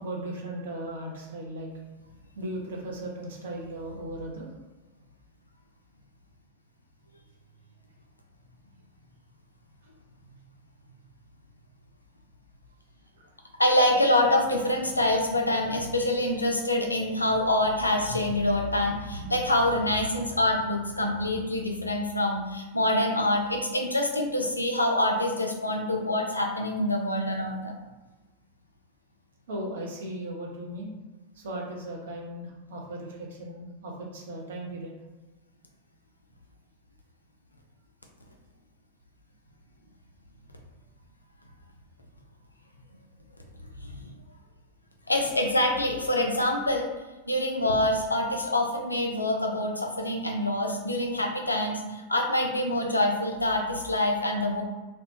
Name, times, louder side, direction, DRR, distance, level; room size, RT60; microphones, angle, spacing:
voice 1, 0.0-1.7 2.4-4.5 13.2-13.3 29.5-30.9 31.3-35.0, right 1 dB, 60° right, -1 dB, 0.5 m, -37 dB
voice 2, 13.6-27.7 43.8-44.1 45.1-46.9 47.3-54.6, left 1 dB, 85° left, 2 dB, 0.3 m, -26 dB
2.2 x 2.1 x 2.7 m, 1.1 s
figure-of-eight pair, 90°, 0 cm